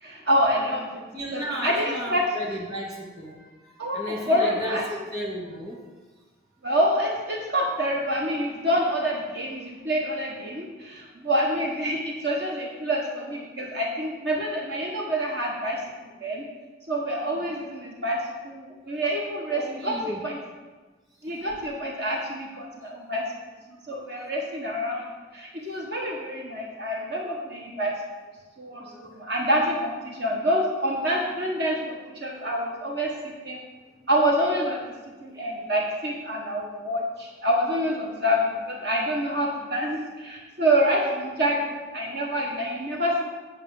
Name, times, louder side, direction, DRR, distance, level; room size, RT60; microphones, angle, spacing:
voice 1, 0.0-1.0 1.3-2.2 3.8-4.0 4.3-4.8 6.6-16.4 16.9-18.2 18.4-20.4 21.2-23.2 23.7-27.9 28.6-33.6 34.1-34.8 35.2-43.2, equal, 55° right, -1 dB, 1.4 m, -27 dB
voice 2, 1.1-5.8 19.5-20.2 28.7-29.2 32.3-32.6, equal, 20° right, -2 dB, 2.2 m, -34 dB
8.8 x 5.6 x 7.8 m, 1.3 s
head